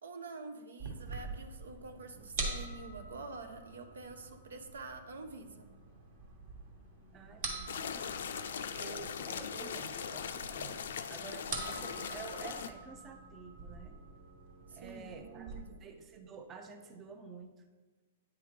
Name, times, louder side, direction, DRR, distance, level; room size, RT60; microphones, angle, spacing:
voice 1, 0.0-5.7 14.7-15.9, right 3 dB, 85° right, 7 dB, 0.7 m, -47 dB
sound 1, 0.8-15.6, right 3 dB, 55° right, 1.3 m, -45 dB
voice 2, 7.1-8.1 8.8-10.8 11.1-14.0 14.7-17.5, right 5 dB, 25° right, 6 dB, 0.5 m, -49 dB
sound 2, 7.7-12.7, left 7 dB, 75° left, 0.4 m, -40 dB
9.2 x 3.5 x 3.2 m, 1.3 s
hypercardioid pair, 140°, 0 cm